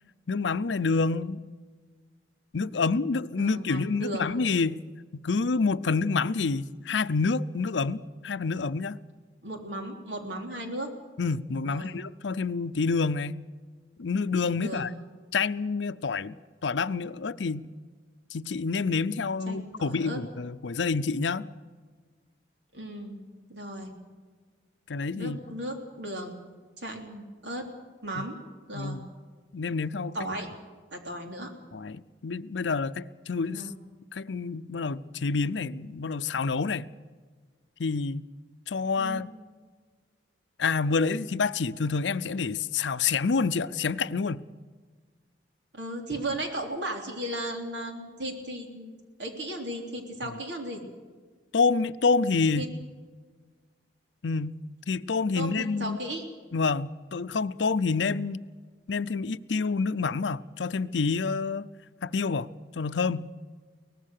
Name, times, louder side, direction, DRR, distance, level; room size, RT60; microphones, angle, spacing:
voice 1, 0.3-1.4 2.5-4.8 5.1-9.0 11.2-13.4 14.0-14.9 15.3-16.3 16.6-17.7 18.3-21.5 24.9-25.4 28.1-28.2 28.7-29.1 29.5-30.2 31.7-33.6 34.1-36.9 37.8-38.3 38.7-39.3 40.6-44.4 50.3-50.4 51.5-52.7 54.2-54.6 54.9-56.0 56.5-58.4 58.9-61.7 62.0-62.5 62.7-63.3, left 4 dB, 85° left, 0.6 m, -28 dB
voice 2, 3.4-4.3 9.4-10.9 11.6-12.0 14.6-14.9 19.5-20.2 22.7-23.2 23.5-23.9 25.1-26.4 26.8-27.7 28.0-28.4 28.7-29.0 30.1-30.5 30.9-31.5 33.4-33.7 39.0-39.3 45.7-50.8 52.6-52.7 55.4-56.2, right 1 dB, 80° right, 3.5 m, -36 dB
23.0 x 19.0 x 6.6 m
head